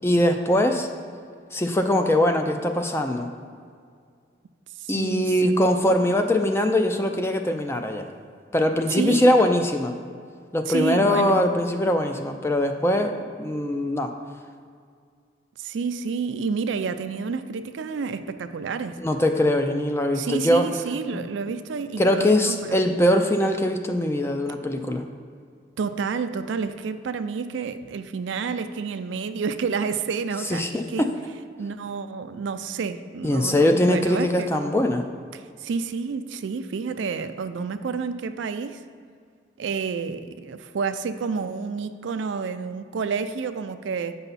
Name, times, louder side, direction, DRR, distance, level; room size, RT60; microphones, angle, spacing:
voice 1, 0.0-0.9 1.5-3.3 4.9-8.1 8.5-9.9 10.5-14.1 19.0-20.7 21.1-21.2 22.0-25.0 30.5-31.1 33.2-35.0, left 1 dB, 15° left, 5 dB, 0.3 m, -22 dB
voice 2, 4.8-5.3 8.9-9.3 10.7-11.5 15.6-19.0 20.1-22.9 25.8-31.1 31.6-34.6 35.3-38.8 39.6-44.2, right 5 dB, 75° right, 10 dB, 0.4 m, -29 dB
8.0 x 5.6 x 4.0 m, 2.1 s
head